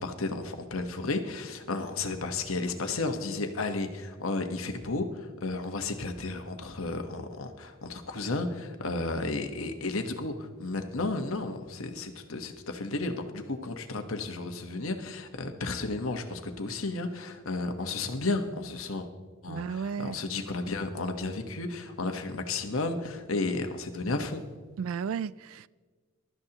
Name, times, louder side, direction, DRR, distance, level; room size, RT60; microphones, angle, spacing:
voice 1, 0.0-19.1 19.4-24.4, left 3 dB, 75° left, 1.2 m, -33 dB
voice 2, 19.5-20.2 24.8-25.7, right 6 dB, 70° right, 0.3 m, -33 dB
22.0 x 12.5 x 2.9 m
head